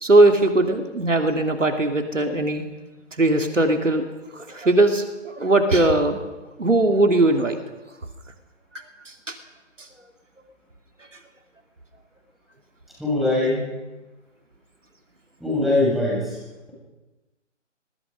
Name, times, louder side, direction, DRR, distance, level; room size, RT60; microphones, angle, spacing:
voice 1, 0.0-2.6 3.2-4.1 4.3-6.2 6.6-7.6 8.7-9.4 9.8-9.9, right 2 dB, 75° right, 5 dB, 3.0 m, -19 dB
voice 2, 13.0-13.6 15.4-16.4, left 2 dB, ahead, -7 dB, 7.3 m, -21 dB
25.5 x 21.5 x 5.4 m, 1.1 s
figure-of-eight pair, 145°, 37 cm